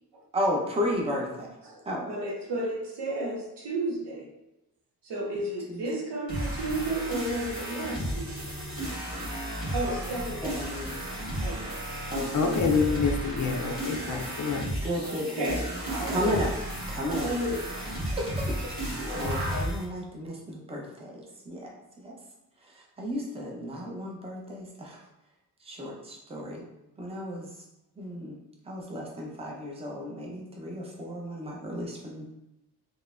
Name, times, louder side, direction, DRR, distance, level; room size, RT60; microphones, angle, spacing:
voice 1, 0.3-1.6 1.8-2.0 5.7-5.8 10.4-11.0 12.1-12.6 14.0-14.5 14.8-15.5 16.1-16.6 16.9-17.3 18.1-22.2 22.6-25.1 25.6-26.6 27.0-27.6 28.0-28.4 28.6-32.3, equal, 15° right, -2 dB, 0.6 m, -34 dB
voice 2, 1.6-4.3 5.0-8.5 9.7-10.6 11.4-11.8 13.7-13.8 15.0-16.3 17.0-17.6, right 1 dB, 85° right, -1 dB, 0.7 m, -33 dB
sound 1, 6.3-19.8, right 1 dB, 60° right, 1.1 m, -33 dB
voice 3, 12.3-14.8, left 5 dB, 50° left, 3 dB, 0.4 m, -27 dB
3.0 x 2.1 x 2.4 m, 0.94 s
cardioid pair, 65°, 40 cm